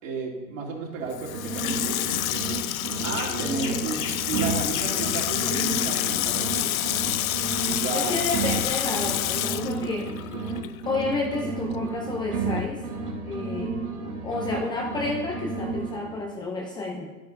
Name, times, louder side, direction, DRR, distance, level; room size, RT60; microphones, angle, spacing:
voice 1, 0.0-2.0 3.0-6.8 7.8-8.2, right 4 dB, 55° right, -2 dB, 2.7 m, -33 dB
sound 1, 0.9-2.6 2.8-6.6 6.8-10.6 10.8-14.6 14.8-16.3, right 4 dB, 80° right, 1.8 m, -32 dB
Water tap faucet / Sink (filling or washing), 1.1-10.8 11.1-11.2, left 13 dB, 65° left, 0.5 m, -28 dB
sound 2, 2.3-2.6 3.0-7.8, left 5 dB, 85° left, 1.1 m, -41 dB
voice 2, 7.9-10.1 10.9-12.8 13.2-13.7 14.2-17.1, left 3 dB, 10° left, -1 dB, 0.5 m, -30 dB
11.5 x 9.0 x 2.5 m, 1.2 s
hypercardioid pair, 110°, 46 cm